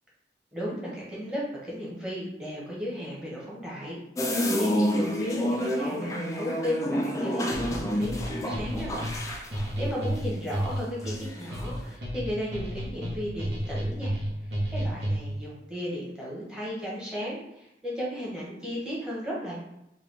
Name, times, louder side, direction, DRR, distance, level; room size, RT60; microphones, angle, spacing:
voice 1, 0.5-4.0 4.6-9.1 9.4-14.1 14.7-19.5, equal, 5° right, -6 dB, 1.0 m, -35 dB
sound 1, 4.2-10.8 11.0-11.6, equal, 20° left, 0.3 m, -29 dB
sound 2, 7.5-15.4, equal, 70° right, 0.9 m, -32 dB
3.8 x 2.3 x 3.3 m, 0.86 s
head